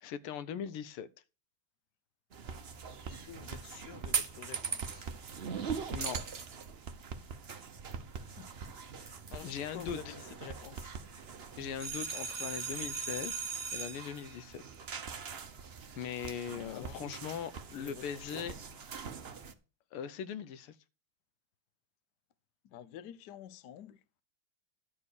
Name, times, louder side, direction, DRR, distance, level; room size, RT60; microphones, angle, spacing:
voice 1, 0.0-1.1 5.9-6.2 9.4-10.1 11.6-13.3 13.7-14.6 16.0-18.5 19.9-20.7, left 8 dB, 80° left, 1.7 m, -40 dB
sound 1, 2.3-19.5, right 6 dB, 50° right, 0.7 m, -41 dB
voice 2, 3.0-5.1 8.4-8.7 9.0-10.9 16.7-17.0 17.7-18.5 22.6-24.0, left 10 dB, 65° left, 1.1 m, -49 dB
12.0 x 4.6 x 8.0 m
omnidirectional pair, 2.4 m